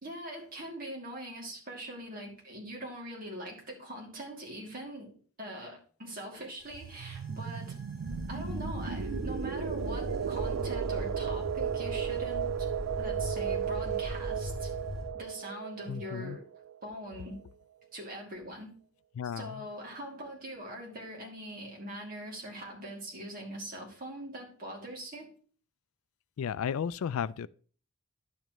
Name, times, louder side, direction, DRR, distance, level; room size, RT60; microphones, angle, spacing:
voice 1, 0.0-5.1 5.4-7.8 8.3-12.7 13.0-14.7 15.2-16.4 16.8-17.4 17.9-18.7 19.2-25.3, equal, 40° right, 2.5 m, -42 dB
sound 1, 6.6-15.1, left 2 dB, 5° right, 3.9 m, -39 dB
Windy Chord Rise, 6.7-17.2, right 9 dB, 85° right, 0.3 m, -35 dB
voice 2, 15.9-16.4 19.2-19.6 26.4-27.5, left 7 dB, 75° left, 0.3 m, -34 dB
10.5 x 7.3 x 3.0 m
head